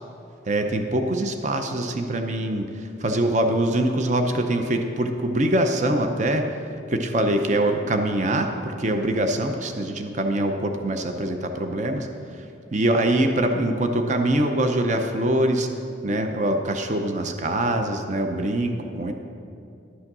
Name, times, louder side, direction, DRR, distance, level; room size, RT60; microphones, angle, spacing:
voice 1, 0.5-6.5 6.9-12.1 12.3-12.5 12.7-15.7 16.0-19.1, right 1 dB, 40° right, 5 dB, 0.6 m, -23 dB
11.5 x 6.3 x 6.0 m, 2.6 s
head